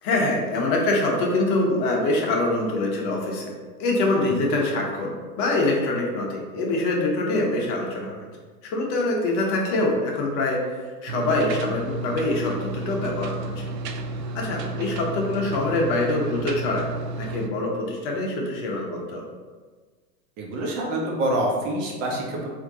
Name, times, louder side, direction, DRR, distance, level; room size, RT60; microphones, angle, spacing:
voice 1, 0.0-3.5 3.8-8.3 8.6-10.6 11.0-13.7 14.3-16.9 17.2-19.2, left 2 dB, 40° left, -1 dB, 1.0 m, -24 dB
sound 1, 11.1-17.5, right 2 dB, 80° right, 0.6 m, -32 dB
voice 2, 20.4-22.5, right 1 dB, 50° right, -1 dB, 1.1 m, -26 dB
3.5 x 2.7 x 3.6 m, 1.5 s
hypercardioid pair, 105°, 49 cm